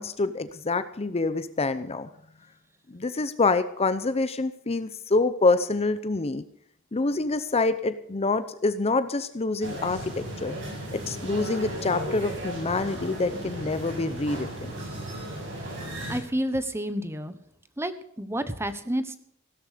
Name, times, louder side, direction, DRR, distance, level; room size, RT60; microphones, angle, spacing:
voice 1, 0.0-2.1 2.9-6.4 6.9-10.5 10.9-14.7, left 3 dB, 30° left, 12 dB, 0.7 m, -26 dB
sound 1, 9.6-16.2, right 1 dB, 60° right, 7.4 m, -35 dB
voice 2, 16.1-17.4 17.8-17.9 18.2-19.2, right 1 dB, 10° right, 12 dB, 1.0 m, -29 dB
16.5 x 13.0 x 5.1 m, 0.70 s
head